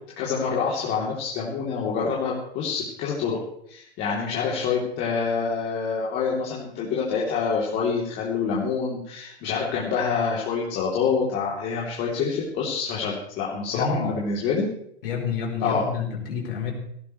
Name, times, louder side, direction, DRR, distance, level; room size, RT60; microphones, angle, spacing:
voice 1, 0.2-3.4 3.7-14.7 15.6-15.9, left 5 dB, 30° left, -4 dB, 3.4 m, -26 dB
voice 2, 13.7-14.1 15.0-16.7, left 5 dB, 55° left, 0 dB, 4.2 m, -29 dB
17.5 x 16.5 x 3.3 m, 0.68 s
figure-of-eight pair, 105°, 33 cm